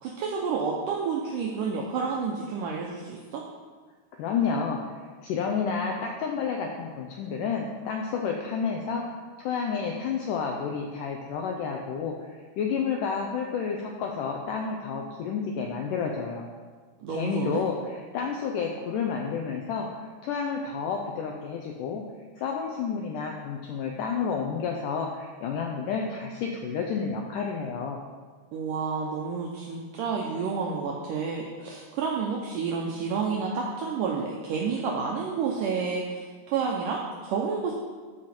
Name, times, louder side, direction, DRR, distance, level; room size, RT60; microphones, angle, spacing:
voice 1, 0.0-3.4 17.0-17.6 28.5-37.7, right 5 dB, 75° right, -2 dB, 2.0 m, -30 dB
voice 2, 4.2-4.8 5.2-9.0 9.4-16.5 17.1-19.9 20.2-22.0 22.4-28.0, left 6 dB, 85° left, 1 dB, 1.8 m, -30 dB
13.5 x 4.9 x 4.3 m, 1.5 s
omnidirectional pair, 4.5 m